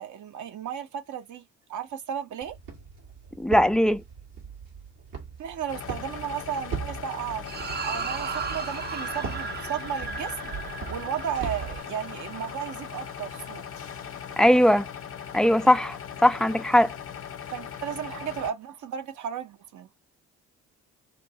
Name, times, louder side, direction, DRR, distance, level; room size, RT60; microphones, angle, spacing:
voice 1, 0.0-1.4 1.7-2.6 5.4-7.4 7.8-10.5 10.9-13.6 17.5-19.9, right 9 dB, 60° right, 0.8 m, -34 dB
Walk footsteps, 2.4-11.8, right 6 dB, 80° right, 1.7 m, -40 dB
voice 2, 3.4-4.0 14.4-14.9 15.3-16.0 16.2-16.9, left 1 dB, ahead, 0.3 m, -19 dB
sound 1, 5.7-18.5, left 8 dB, 40° left, 0.7 m, -39 dB
sound 2, 7.4-14.0, right 5 dB, 30° right, 0.6 m, -37 dB
3.0 x 2.6 x 4.1 m
hypercardioid pair, 50°, 34 cm